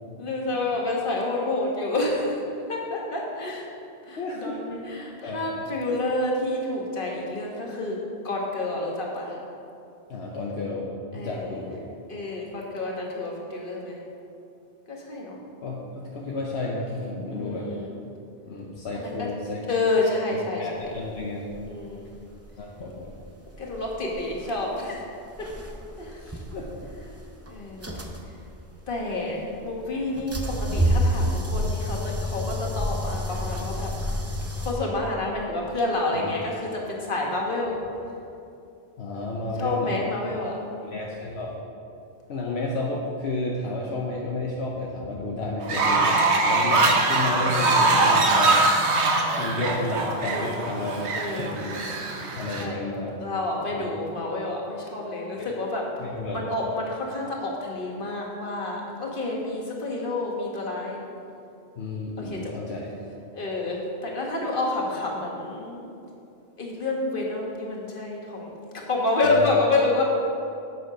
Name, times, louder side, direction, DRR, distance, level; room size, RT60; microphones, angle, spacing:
voice 1, 0.2-2.4 2.7-3.7 4.1-8.0 8.2-9.4 11.1-11.4 12.1-14.0 14.9-15.4 17.3-17.9 18.9-19.3 19.7-20.6 21.7-22.0 23.6-25.0 25.4-25.5 26.0-26.3 27.5-28.0 28.9-33.9 34.6-37.8 39.6-40.6 50.3-50.6 51.2-51.5 52.6-52.8 53.2-55.8 56.3-61.0 62.2-62.5 63.3-65.9 66.6-68.5 68.9-70.0, left 2 dB, 50° left, -2 dB, 1.5 m, -29 dB
voice 2, 4.2-4.6 5.2-5.7 10.1-11.8 15.6-17.7 18.5-19.6 20.6-21.7 22.6-23.1 26.5-26.7 36.1-36.3 39.0-40.2 40.9-41.6 42.3-46.8 47.1-48.6 49.4-51.1 51.4-51.8 52.3-53.2 53.7-53.9 55.4-55.5 56.0-56.5 61.8-62.9 69.2-69.5, left 2 dB, 70° left, -3 dB, 1.1 m, -31 dB
sound 1, 20.8-34.7, equal, 20° right, 0.5 m, -29 dB
Fowl, 45.6-52.6, right 2 dB, 80° right, 1.2 m, -22 dB
7.9 x 6.2 x 5.0 m, 2.7 s
omnidirectional pair, 1.1 m